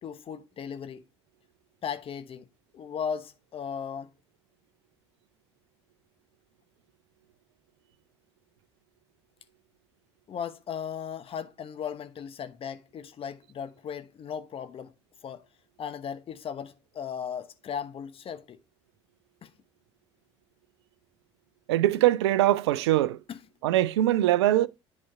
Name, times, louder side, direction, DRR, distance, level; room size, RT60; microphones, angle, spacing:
voice 1, 0.0-1.0 1.8-2.5 2.7-4.1 10.3-14.9 15.2-15.4 15.8-18.6 19.4-19.5 23.3-23.4, left 7 dB, 40° left, 1.0 m, -37 dB
voice 2, 21.7-23.2 23.6-24.7, right 14 dB, 75° right, 0.5 m, -22 dB
10.5 x 4.2 x 3.2 m
figure-of-eight pair, 55°, 14 cm